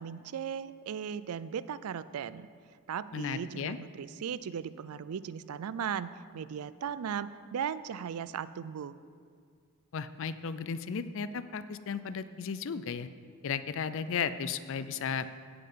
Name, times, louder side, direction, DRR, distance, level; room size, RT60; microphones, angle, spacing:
voice 1, 0.0-2.5 2.9-8.9, right 7 dB, 75° right, 16 dB, 0.4 m, -37 dB
voice 2, 3.1-3.8 9.9-13.1 13.4-15.3, left 6 dB, 60° left, 13 dB, 0.4 m, -35 dB
16.5 x 5.6 x 5.6 m, 2.1 s
head